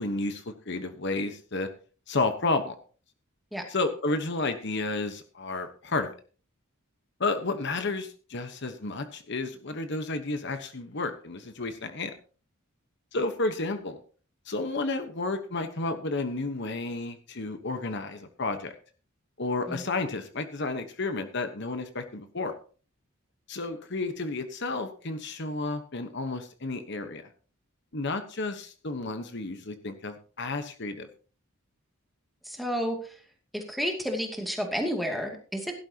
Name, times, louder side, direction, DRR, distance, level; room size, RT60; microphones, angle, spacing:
voice 1, 0.0-1.7 2.1-2.7 3.7-6.1 7.2-12.1 13.1-14.0 14.5-18.7 19.4-22.5 23.5-27.2 27.9-31.1, left 3 dB, 55° left, 8 dB, 1.2 m, -31 dB
voice 2, 32.4-33.1 33.5-35.7, equal, ahead, 2 dB, 2.4 m, -31 dB
17.0 x 12.0 x 2.9 m, 0.38 s
head